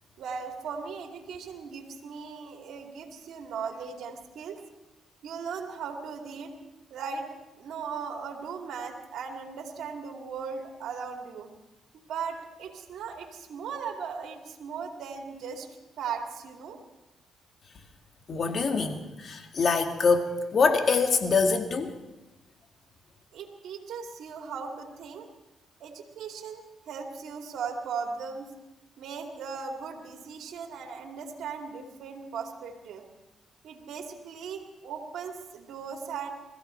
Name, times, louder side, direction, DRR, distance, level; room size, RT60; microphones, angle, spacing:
voice 1, 0.2-4.6 5.2-6.5 6.9-7.3 7.6-11.5 11.9-15.7 16.0-16.8 23.3-25.3 25.8-28.5 29.0-33.0 33.6-36.3, right 6 dB, 75° right, 3 dB, 2.4 m, -38 dB
voice 2, 18.3-21.9, left 4 dB, 50° left, 5 dB, 1.9 m, -24 dB
21.5 x 14.5 x 4.5 m, 1.0 s
cardioid pair, 70°, 0 cm